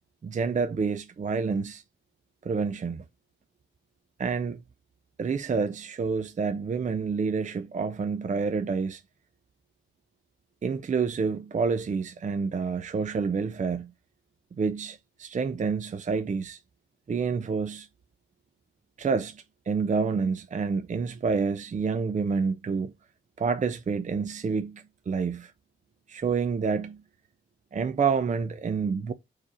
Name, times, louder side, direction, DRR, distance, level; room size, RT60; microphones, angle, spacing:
voice 1, 0.2-1.8 2.4-3.0 4.2-4.6 5.2-9.0 10.6-13.9 14.6-16.6 17.1-17.9 19.0-22.9 23.4-25.5 26.1-27.0 27.7-29.1, right 5 dB, 35° right, 0.5 m, -28 dB
4.8 x 4.3 x 4.8 m
wide cardioid pair, 140°, 21 cm